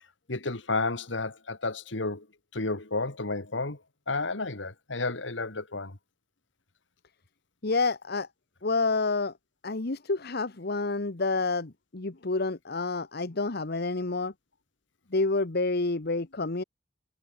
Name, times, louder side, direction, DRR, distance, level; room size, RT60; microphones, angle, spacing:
voice 1, 0.3-2.3 2.5-3.8 4.1-6.0, left 3 dB, 75° left, 2.4 m, -31 dB
voice 2, 7.6-8.3 8.6-9.3 9.6-14.3 15.1-16.6, left 3 dB, 55° left, 1.2 m, -28 dB
head